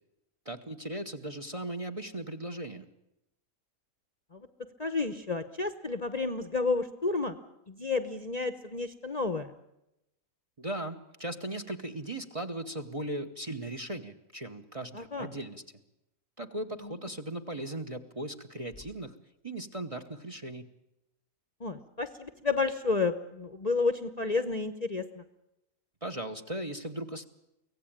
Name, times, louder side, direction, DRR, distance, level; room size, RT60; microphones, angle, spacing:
voice 1, 0.4-2.9 10.6-15.6 16.4-19.1 19.4-20.7 26.0-27.2, right 1 dB, 25° right, 9 dB, 1.0 m, -38 dB
voice 2, 4.8-7.4 7.7-9.5 14.9-15.3 16.8-16.9 21.6-25.2, left 4 dB, 30° left, 10 dB, 0.9 m, -31 dB
24.5 x 17.0 x 8.9 m, 0.88 s
omnidirectional pair, 1.6 m